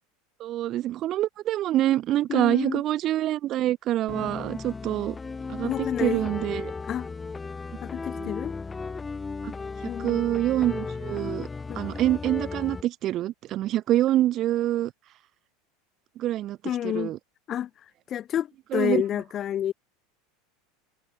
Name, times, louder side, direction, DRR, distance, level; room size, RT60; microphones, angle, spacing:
voice 1, 0.4-5.2 5.5-6.7 8.2-8.3 9.4-9.5 10.0-11.5 11.8-14.9 16.2-16.6 16.8-17.2 18.7-19.0, right 13 dB, 45° right, 2.3 m, -26 dB
voice 2, 2.3-2.8 5.6-6.3 6.9-7.1 7.8-8.6 9.8-10.2 11.7-11.8 16.6-17.1 17.5-17.7 18.1-18.5 18.7-19.7, left 10 dB, 35° left, 1.3 m, -29 dB
sound 1, 4.1-12.8, left 4 dB, 15° left, 3.1 m, -35 dB
supercardioid pair, 120°, 0 cm